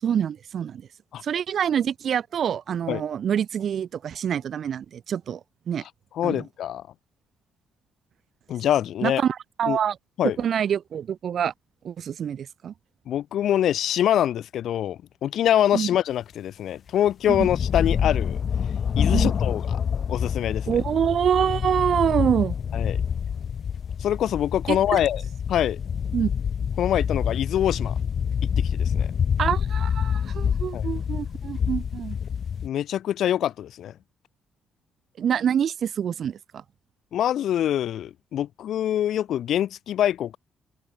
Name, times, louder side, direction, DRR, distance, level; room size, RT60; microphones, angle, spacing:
voice 1, 0.0-0.8 1.2-5.4 5.7-5.8 6.2-6.4 9.0-10.0 10.4-11.5 11.8-12.7 15.7-15.9 17.3-17.5 19.1-19.3 20.7-22.6 24.7-25.0 26.1-26.3 29.4-32.2 35.2-36.6, right 8 dB, 60° right, 5.7 m, -26 dB
voice 2, 6.1-6.8 8.5-9.2 9.7-9.8 10.2-10.4 13.1-18.4 18.9-19.8 20.1-20.8 22.7-23.0 24.0-25.2 25.5-25.8 26.8-27.9 28.6-29.1 30.7-30.9 32.6-33.9 37.1-40.4, left 11 dB, 70° left, 2.9 m, -24 dB
sound 1, 17.1-32.7, left 7 dB, 55° left, 7.2 m, -27 dB
cardioid pair, 80°, 0 cm